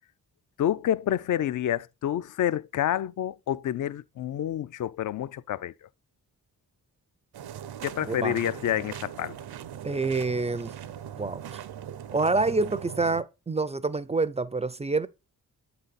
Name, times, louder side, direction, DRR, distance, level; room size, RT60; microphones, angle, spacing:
voice 1, 0.6-5.7 7.8-9.4, left 11 dB, 55° left, 0.4 m, -28 dB
sound 1, 7.3-13.2, right 9 dB, 80° right, 0.6 m, -40 dB
voice 2, 8.1-8.4 9.8-10.7 11.2-11.6 12.1-15.1, right 3 dB, 20° right, 0.3 m, -27 dB
7.9 x 3.9 x 4.0 m
cardioid pair, 60°, 38 cm